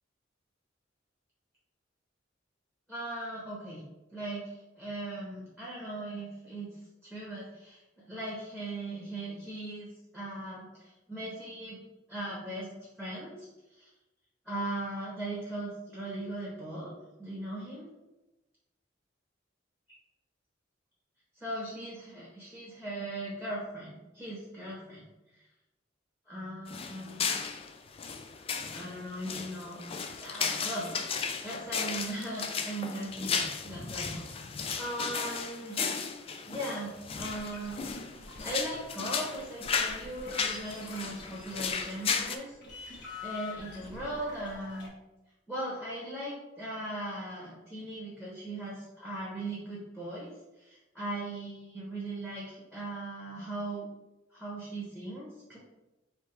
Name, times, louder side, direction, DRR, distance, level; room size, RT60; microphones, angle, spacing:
voice 1, 2.9-3.8 4.1-6.7 7.1-11.8 12.1-13.5 13.7-13.9 14.4-17.9 21.4-25.0 26.3-27.3 28.7-34.5 34.8-35.9 36.5-37.8 38.2-44.9 45.5-50.3 50.6-53.9 54.3-55.6, right 1 dB, ahead, -6 dB, 1.0 m, -39 dB
sound 1, 26.7-42.4, left 5 dB, 30° left, 0.3 m, -35 dB
sound 2, 37.1-42.2 42.5-44.9, left 3 dB, 60° left, 1.3 m, -46 dB
3.4 x 3.1 x 4.4 m, 1.0 s
head